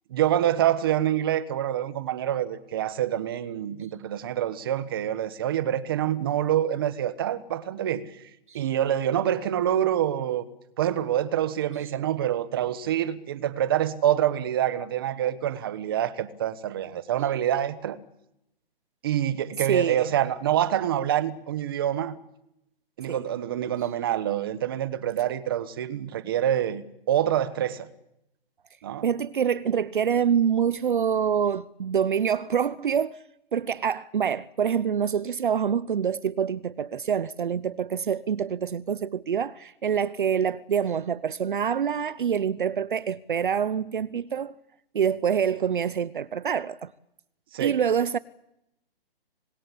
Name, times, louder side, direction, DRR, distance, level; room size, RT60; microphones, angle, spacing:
voice 1, 0.1-8.0 8.5-10.4 10.8-18.0 19.0-22.2 23.0-27.9 28.8-29.1 47.5-47.8, right 11 dB, 25° right, 1.3 m, -26 dB
voice 2, 19.7-20.1 23.1-23.2 29.0-33.2 33.5-44.5 44.9-46.9 47.6-48.2, right 8 dB, 55° right, 0.9 m, -26 dB
26.5 x 21.5 x 8.5 m
hypercardioid pair, 175°, 30 cm